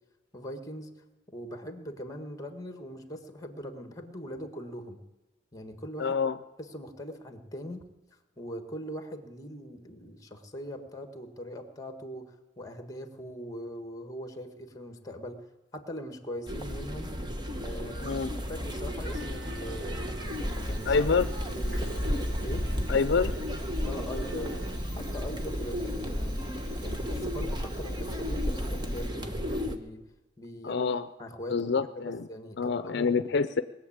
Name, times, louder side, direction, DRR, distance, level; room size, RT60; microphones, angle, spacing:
voice 1, 0.3-0.9 1.3-5.0 5.5-6.2 6.6-7.8 8.1-15.4 15.7-17.1 17.6-18.2 18.5-21.2 21.5-21.9 22.4-22.7 23.8-24.6 25.0-26.4 26.8-30.0 30.4-30.9 31.2-33.1, equal, 20° left, 7 dB, 1.6 m, -41 dB
voice 2, 6.0-6.4 18.0-18.3 20.9-21.3 22.9-23.3 30.6-31.1 31.5-32.3 32.6-33.6, left 5 dB, 65° left, 12 dB, 0.5 m, -26 dB
sound 1, 16.5-29.8, equal, 25° right, 1.2 m, -33 dB
sound 2, 19.0-24.8, right 3 dB, 70° right, 0.9 m, -48 dB
Fire, 20.2-29.5, right 1 dB, 50° right, 4.1 m, -54 dB
20.5 x 7.3 x 8.7 m, 1.1 s
head